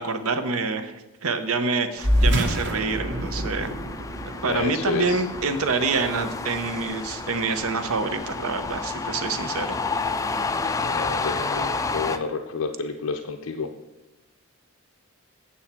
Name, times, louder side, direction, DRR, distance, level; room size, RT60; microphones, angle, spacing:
voice 1, 0.0-3.7 4.4-9.8, right 4 dB, 75° right, 9 dB, 0.8 m, -27 dB
sound 1, 2.0-12.2, left 4 dB, 15° left, 0.3 m, -31 dB
sound 2, 2.0-6.9, equal, 55° right, 1.3 m, -27 dB
voice 2, 4.4-5.2 10.8-13.7, left 4 dB, 75° left, 3 dB, 0.6 m, -30 dB
8.6 x 7.1 x 4.3 m, 1.0 s
head